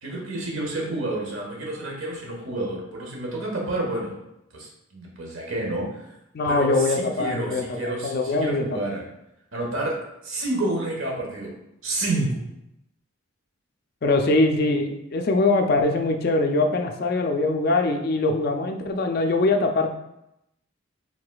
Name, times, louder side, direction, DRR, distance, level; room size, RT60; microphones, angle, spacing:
voice 1, 0.0-4.2 4.5-6.1 6.5-9.0 9.5-10.0 10.2-11.5 11.8-12.3, right 2 dB, 70° right, -2 dB, 1.2 m, -29 dB
voice 2, 6.3-8.7 14.0-19.9, left 2 dB, 45° left, 4 dB, 0.4 m, -22 dB
4.7 x 3.7 x 2.3 m, 0.85 s
head